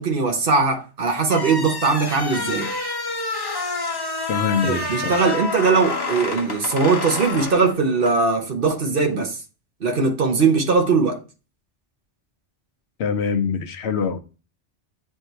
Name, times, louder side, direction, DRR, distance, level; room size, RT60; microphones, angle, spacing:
voice 1, 0.0-2.7 4.6-9.4 9.8-11.2, right 4 dB, 50° right, 1.2 m, -20 dB
sound 1, 1.2-8.2, left 3 dB, 20° left, 0.8 m, -28 dB
voice 2, 4.3-5.2 13.0-14.2, left 6 dB, 70° left, 1.0 m, -24 dB
8.0 x 2.7 x 4.5 m
omnidirectional pair, 1.2 m